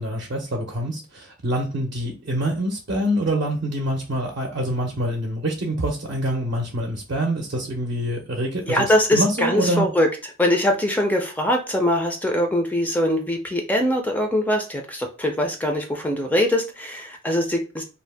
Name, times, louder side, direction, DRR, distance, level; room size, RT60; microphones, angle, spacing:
voice 1, 0.0-9.9, right 1 dB, 55° right, 0 dB, 0.5 m, -26 dB
voice 2, 8.7-10.1 10.4-17.8, left 1 dB, 10° left, 3 dB, 0.3 m, -22 dB
2.5 x 2.1 x 3.2 m, 0.33 s
head